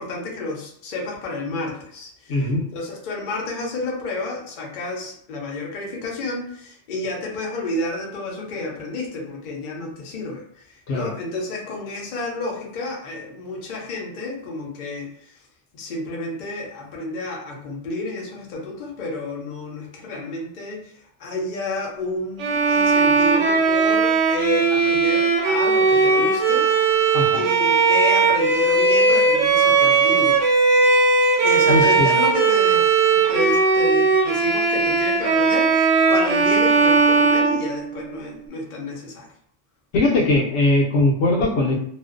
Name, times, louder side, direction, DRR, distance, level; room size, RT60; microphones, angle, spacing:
voice 1, 0.0-2.4 2.7-15.3 15.7-20.8 21.2-30.5 31.4-39.3, left 2 dB, 55° left, -1 dB, 0.6 m, -30 dB
voice 2, 2.3-2.6 10.9-11.1 27.1-27.4 31.7-32.1 39.9-41.8, left 2 dB, 75° left, -1 dB, 0.9 m, -20 dB
Bowed string instrument, 22.4-38.3, right 4 dB, 75° right, 0.9 m, -18 dB
2.4 x 2.1 x 2.4 m, 0.66 s
omnidirectional pair, 1.3 m